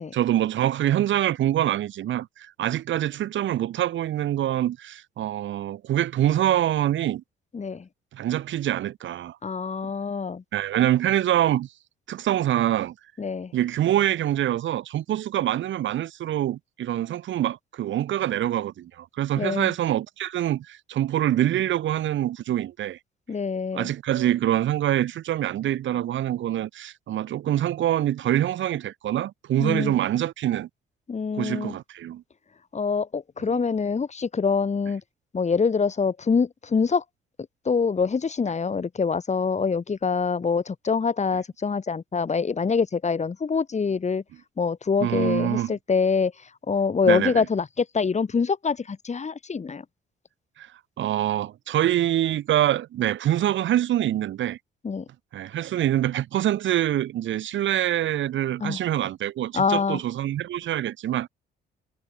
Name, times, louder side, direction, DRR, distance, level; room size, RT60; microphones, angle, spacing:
voice 1, 0.1-7.2 8.1-9.4 10.5-11.7 12.1-13.0 13.5-23.0 23.7-30.7 31.3-32.2 33.5-33.6 45.0-45.7 47.1-47.3 50.6-50.7 51.0-54.6 55.3-61.3, right 12 dB, 70° right, 1.7 m, -25 dB
voice 2, 7.5-7.9 9.4-10.4 13.2-13.5 19.4-19.7 23.3-23.9 29.6-30.0 31.1-31.8 32.7-35.0 35.3-37.0 37.6-44.2 44.6-49.9 54.8-55.1 58.6-58.8 59.5-60.0, left 5 dB, 35° left, 3.6 m, -25 dB
cardioid pair, 90°, 20 cm